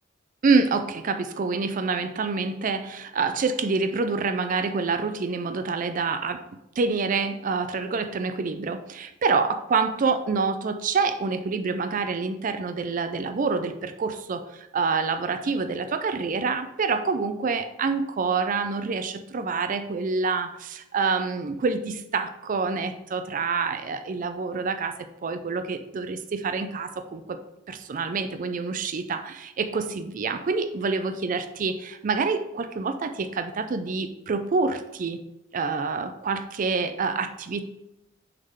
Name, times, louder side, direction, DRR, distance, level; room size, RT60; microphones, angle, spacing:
voice 1, 0.4-6.4 6.8-27.4 27.7-35.2 35.5-37.6, right 4 dB, 40° right, 9 dB, 0.4 m, -27 dB
6.4 x 3.7 x 5.6 m, 0.91 s
head